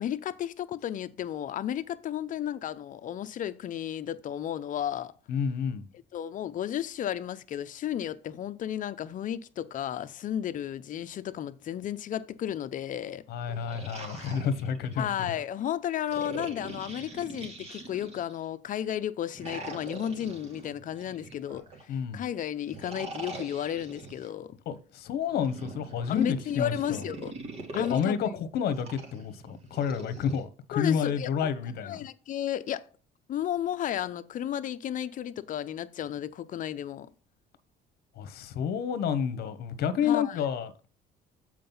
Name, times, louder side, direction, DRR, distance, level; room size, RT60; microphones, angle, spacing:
voice 1, 0.0-5.1 6.1-13.2 15.0-24.6 26.1-27.3 27.7-28.2 30.7-31.3 31.8-32.9 33.3-37.1 40.0-40.4, left 10 dB, 50° left, 0.7 m, -33 dB
voice 2, 5.3-5.9 13.3-15.1 21.9-22.2 24.7-27.1 27.7-32.0 38.2-40.7, left 7 dB, 70° left, 1.1 m, -30 dB
sound 1, 13.3-15.3 16.1-18.4 19.3-21.9 22.7-24.3 25.3-28.1 28.7-30.4, right 2 dB, 35° right, 2.6 m, -43 dB
7.6 x 4.8 x 5.5 m
cardioid pair, 110°, 17 cm